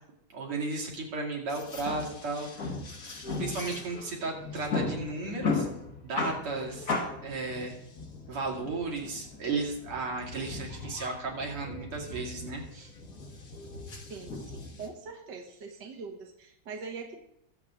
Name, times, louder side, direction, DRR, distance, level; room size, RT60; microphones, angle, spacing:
voice 1, 0.3-2.7 3.4-5.7 6.0-6.9 7.2-7.7 8.3-12.9, right 3 dB, 80° right, -1 dB, 3.3 m, -34 dB
sound 1, 1.5-14.9, left 3 dB, 40° left, 2.0 m, -37 dB
voice 2, 14.1-17.1, right 4 dB, 55° right, 1 dB, 2.0 m, -42 dB
21.0 x 7.7 x 3.7 m, 0.80 s
omnidirectional pair, 2.4 m